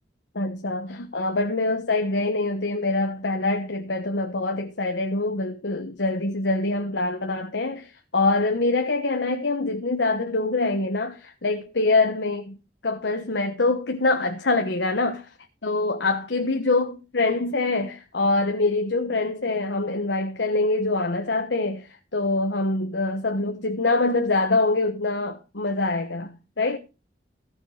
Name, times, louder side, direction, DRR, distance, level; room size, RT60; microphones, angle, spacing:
voice 1, 0.3-12.6 12.8-15.3 15.6-26.8, left 2 dB, 85° left, 1.2 m, -24 dB
15.0 x 6.1 x 4.9 m
head